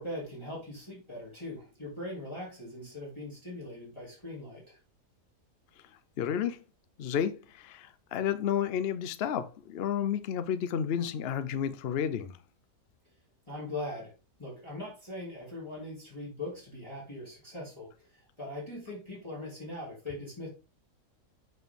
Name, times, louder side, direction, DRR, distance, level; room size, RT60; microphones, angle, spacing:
voice 1, 0.0-4.8 13.5-14.1 14.4-20.5, left 1 dB, 15° left, 2.9 m, -41 dB
voice 2, 6.2-6.6 7.0-12.4, left 8 dB, 70° left, 0.5 m, -31 dB
7.7 x 5.3 x 3.7 m
omnidirectional pair, 1.8 m